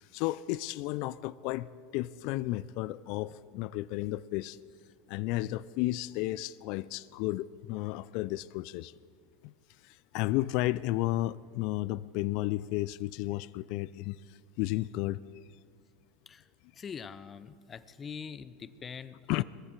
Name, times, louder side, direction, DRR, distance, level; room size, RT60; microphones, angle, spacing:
voice 1, 0.0-1.7 1.9-4.6 5.1-8.9 9.4-9.5 9.8-15.2 19.3-19.4, left 17 dB, 60° left, 18 dB, 0.4 m, -33 dB
voice 2, 16.8-19.4, left 6 dB, 30° left, 14 dB, 0.8 m, -43 dB
21.0 x 14.0 x 4.6 m, 2.1 s
hypercardioid pair, 95°, 0 cm